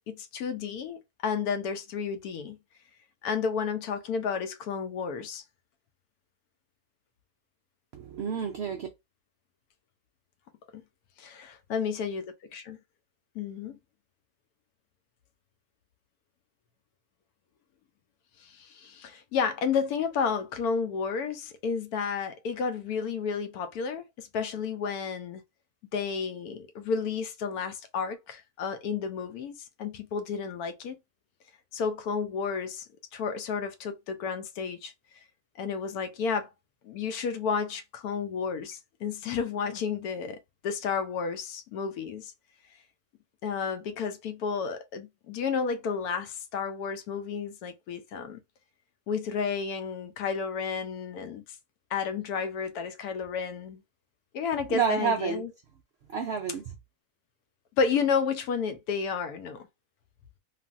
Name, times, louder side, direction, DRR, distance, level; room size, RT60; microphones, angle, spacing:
voice 1, 0.1-2.6 3.2-5.4 10.7-10.8 11.2-12.8 13.3-13.8 18.4-25.4 25.9-31.0 31.7-32.9 33.1-34.9 35.6-36.5 36.8-42.3 43.4-48.4 49.1-51.4 51.9-53.8 54.3-55.5 57.8-59.7, left 6 dB, 75° left, 1.1 m, -31 dB
voice 2, 7.9-8.9 54.7-55.4 56.1-56.7, right 6 dB, 80° right, 0.6 m, -29 dB
3.2 x 2.5 x 2.4 m
omnidirectional pair, 1.6 m